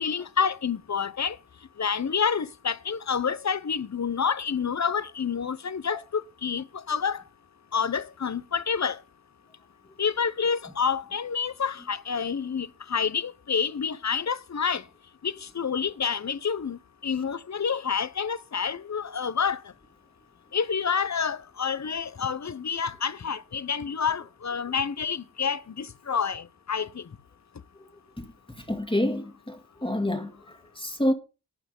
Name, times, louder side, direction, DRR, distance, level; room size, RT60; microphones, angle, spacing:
voice 1, 0.0-1.4 1.8-7.2 7.7-9.0 10.0-14.8 15.2-19.6 20.5-27.0, left 6 dB, 45° left, 1.0 m, -28 dB
voice 2, 28.2-31.1, left 1 dB, 15° left, 2.0 m, -29 dB
11.5 x 9.1 x 5.4 m
cardioid pair, 40°, 39 cm